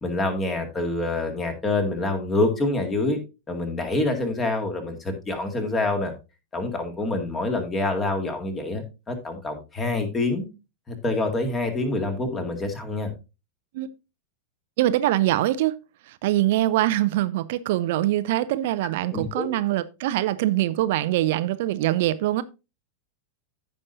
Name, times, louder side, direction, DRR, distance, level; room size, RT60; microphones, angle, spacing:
voice 1, 0.0-3.2 3.5-6.1 6.5-10.5 10.9-13.1 19.1-19.5, left 2 dB, 20° left, 2.1 m, -26 dB
voice 2, 14.8-15.7 16.1-22.4, right 15 dB, 50° right, 0.5 m, -23 dB
15.0 x 5.3 x 2.7 m
figure-of-eight pair, 90°, 0 cm